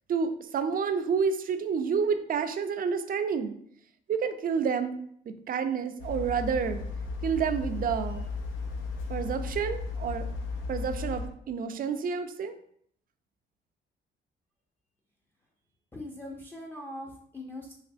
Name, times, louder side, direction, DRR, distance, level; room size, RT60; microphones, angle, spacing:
voice 1, 0.1-3.5 4.1-5.0 5.3-6.8 7.2-8.3 9.1-10.3 10.7-12.5, right 6 dB, 45° right, 8 dB, 0.4 m, -29 dB
sound 1, 6.0-11.3, left 4 dB, 85° left, 0.5 m, -35 dB
voice 2, 15.9-17.7, left 1 dB, 10° left, -1 dB, 0.4 m, -41 dB
3.2 x 2.9 x 2.5 m, 0.66 s
cardioid pair, 90°, 20 cm